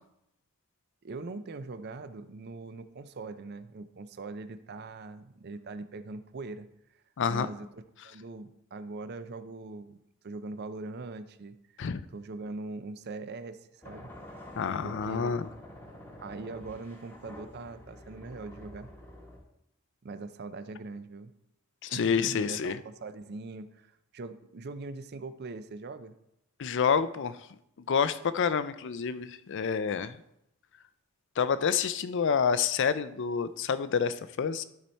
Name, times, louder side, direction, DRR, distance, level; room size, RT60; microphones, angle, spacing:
voice 1, 1.0-6.7 7.3-11.8 12.1-14.1 14.8-15.4 16.2-18.9 20.0-21.3 21.9-26.1, right 3 dB, 45° right, 11 dB, 0.5 m, -41 dB
sound 1, 13.8-19.4, left 1 dB, 10° left, 1.0 m, -48 dB
voice 2, 14.6-15.5 21.8-22.8 26.6-27.4 27.9-30.2 31.4-34.6, left 6 dB, 55° left, 14 dB, 0.4 m, -28 dB
12.0 x 4.2 x 4.4 m, 0.81 s
head